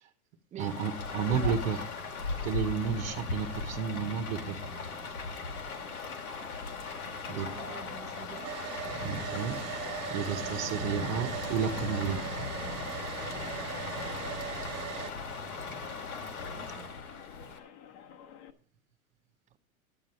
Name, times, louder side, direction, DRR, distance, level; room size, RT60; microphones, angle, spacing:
Rain, 0.6-17.6, left 3 dB, 85° left, 2.3 m, -38 dB
voice 1, 0.6-1.8 2.4-4.6 7.3-7.5 9.0-9.6 10.1-12.2, right 7 dB, 55° right, 5 dB, 1.3 m, -32 dB
voice 2, 1.3-1.6 7.3-8.6 16.5-16.9, right 9 dB, 15° right, 13 dB, 0.5 m, -45 dB
sound 1, 5.7-18.5, left 7 dB, 55° left, 1.3 m, -50 dB
Domestic sounds home sounds, 8.4-15.1, right 12 dB, 35° right, 1.7 m, -40 dB
11.0 x 7.6 x 5.7 m, 0.41 s
hypercardioid pair, 105°, 43 cm